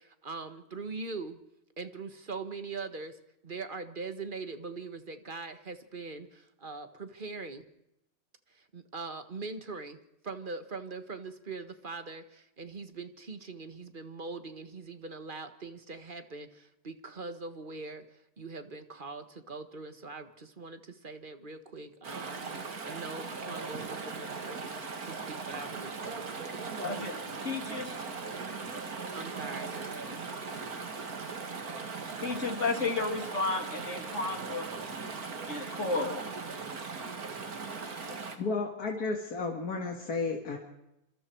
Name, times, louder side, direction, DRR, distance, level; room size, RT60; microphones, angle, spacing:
voice 1, 0.0-1.4 1.8-7.7 8.5-24.7 25.0-26.5 29.1-29.8, right 4 dB, 35° right, 9 dB, 1.6 m, -42 dB
Chatter / Stream, 22.0-38.4, right 4 dB, 80° right, 2.5 m, -39 dB
voice 2, 26.8-27.2 27.4-28.1 32.2-34.7 35.5-36.2, left 3 dB, 55° left, 4 dB, 3.4 m, -32 dB
voice 3, 38.4-40.6, left 4 dB, 90° left, 2 dB, 2.7 m, -32 dB
26.5 x 26.5 x 4.7 m, 0.86 s
omnidirectional pair, 1.6 m